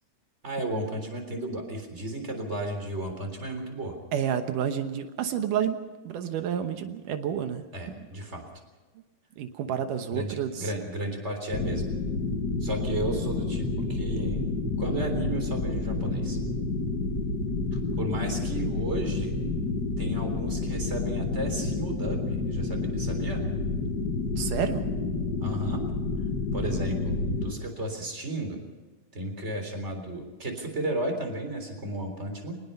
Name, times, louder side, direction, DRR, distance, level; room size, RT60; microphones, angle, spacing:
voice 1, 0.4-4.0 7.7-8.4 10.1-11.9 12.6-14.4 14.8-16.4 17.7-19.4 20.0-23.4 25.4-25.8 26.5-28.6 29.1-32.6, right 1 dB, 20° right, 4 dB, 3.8 m, -34 dB
voice 2, 4.1-7.9 9.4-10.7 24.4-24.8, right 9 dB, 85° right, 8 dB, 2.7 m, -30 dB
sound 1, 11.5-27.5, left 3 dB, 40° left, 1.6 m, -29 dB
23.5 x 20.0 x 5.6 m, 1.3 s
omnidirectional pair, 3.6 m